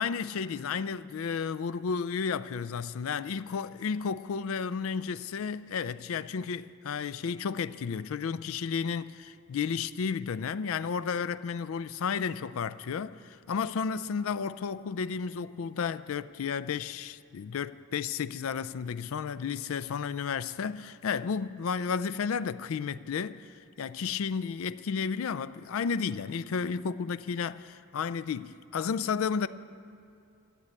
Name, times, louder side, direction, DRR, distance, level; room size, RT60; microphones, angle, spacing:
voice 1, 0.0-29.5, left 6 dB, 65° left, 0.4 m, -32 dB
13.0 x 7.8 x 9.5 m
head